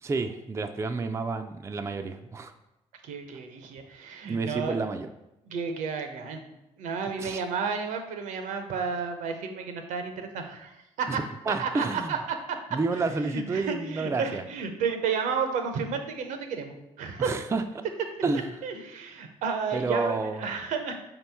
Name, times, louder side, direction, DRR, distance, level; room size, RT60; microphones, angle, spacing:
voice 1, 0.0-2.5 4.2-5.1 7.2-7.4 11.1-12.1 12.7-14.4 17.2-17.6 18.2-18.4 19.7-20.4, right 3 dB, 20° right, 7 dB, 0.4 m, -30 dB
voice 2, 3.0-4.8 5.5-6.4 6.8-11.2 11.6-12.6 12.9-17.3 18.6-21.0, right 5 dB, 75° right, 6 dB, 0.6 m, -32 dB
5.0 x 3.0 x 3.4 m, 0.93 s
hypercardioid pair, 55°, 13 cm